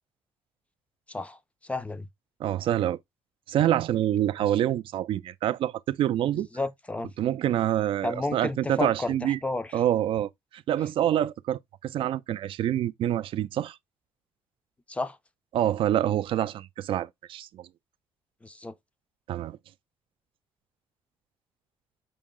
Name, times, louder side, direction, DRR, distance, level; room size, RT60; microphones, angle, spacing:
voice 1, 1.1-2.1 6.3-7.1 8.0-9.8 14.9-15.2 18.4-18.7, left 2 dB, 15° left, 0.4 m, -32 dB
voice 2, 2.4-3.0 3.5-6.5 7.2-9.4 9.7-13.8 15.5-17.7 19.3-19.6, right 11 dB, 60° right, 0.3 m, -26 dB
5.4 x 2.0 x 3.6 m
cardioid pair, 125°, 10 cm